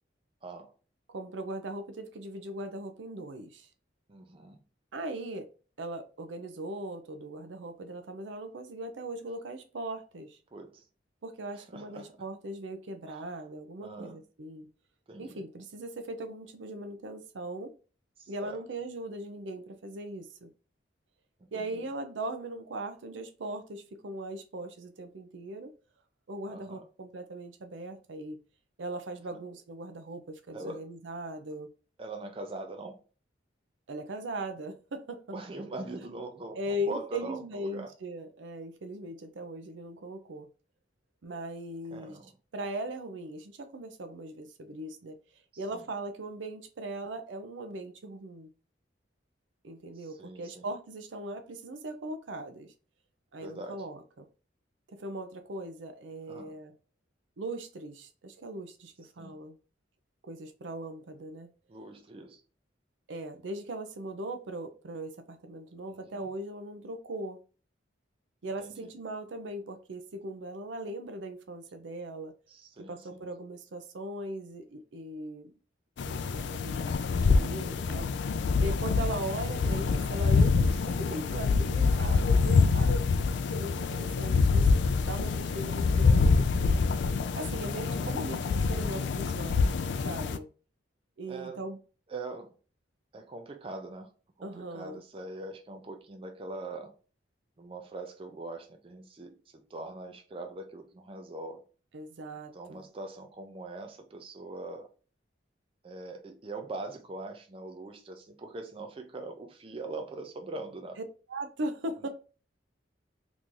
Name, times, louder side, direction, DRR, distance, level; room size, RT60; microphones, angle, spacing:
voice 1, 0.4-0.7 4.1-4.6 10.5-10.8 11.6-12.2 13.1-13.3 13.8-14.2 15.1-15.4 18.2-18.6 21.4-21.8 26.5-26.9 30.5-30.8 32.0-33.0 35.3-37.9 41.9-42.3 45.7-45.8 50.0-50.7 53.4-53.8 56.3-56.5 59.2-59.4 61.7-62.4 65.9-66.2 68.6-68.9 72.5-73.2 77.4-78.0 81.0-81.2 85.3-85.5 87.8-88.5 91.3-91.7 92.1-92.5 93.1-94.1 94.4-96.9 97.6-101.6 102.5-104.9 105.8-111.0, right 2 dB, 30° right, 0.4 m, -42 dB
voice 2, 1.1-3.7 4.9-5.5 5.8-10.4 11.2-14.7 15.2-17.7 18.3-20.5 21.5-25.7 26.3-28.4 28.8-31.7 33.9-35.4 36.0-36.2 36.5-40.5 41.2-42.2 42.5-45.2 45.6-48.5 49.6-52.7 53.3-54.3 54.9-56.7 57.4-59.6 60.3-61.5 63.1-67.4 68.4-72.3 72.8-75.5 76.0-78.1 78.6-83.0 83.5-86.7 87.3-89.8 90.0-90.5 91.2-91.8 94.4-95.0 101.9-102.9 111.3-112.1, right 1 dB, 80° right, 0.5 m, -39 dB
sound 1, 76.0-90.4, left 4 dB, 65° left, 0.3 m, -26 dB
3.0 x 2.6 x 3.7 m
head